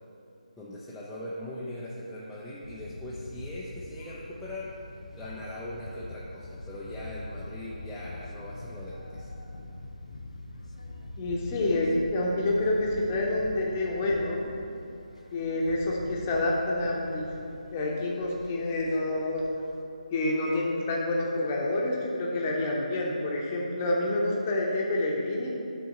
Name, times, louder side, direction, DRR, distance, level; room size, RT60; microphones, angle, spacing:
voice 1, 0.6-4.7 5.2-9.3, left 1 dB, ahead, -10 dB, 0.3 m, -40 dB
sound 1, 2.6-19.8, left 2 dB, 60° left, 0.7 m, -44 dB
voice 2, 11.2-14.5 15.3-17.3 17.7-19.4 20.1-25.5, left 2 dB, 20° left, -3 dB, 0.7 m, -28 dB
6.2 x 3.4 x 5.9 m, 2.7 s
figure-of-eight pair, 150°, 4 cm